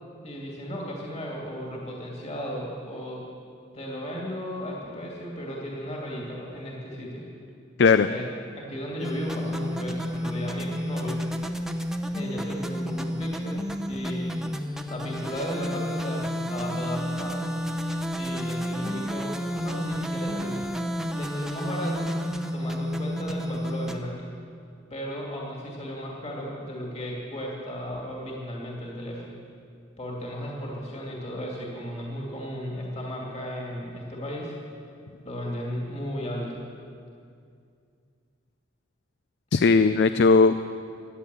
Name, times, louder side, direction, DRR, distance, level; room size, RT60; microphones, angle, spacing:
voice 1, 0.2-3.3 3.7-7.2 8.1-8.2 8.6-11.2 12.1-14.3 14.9-17.5 18.2-20.6 21.1-22.2 22.5-24.3 24.9-29.3 30.0-34.5 35.2-36.7, equal, 35° left, -2 dB, 2.5 m, -35 dB
sound 1, 9.0-24.0, equal, ahead, 0.7 m, -31 dB
voice 2, 39.5-40.7, left 4 dB, 55° left, 12 dB, 0.4 m, -18 dB
15.5 x 11.0 x 8.3 m, 2.4 s
head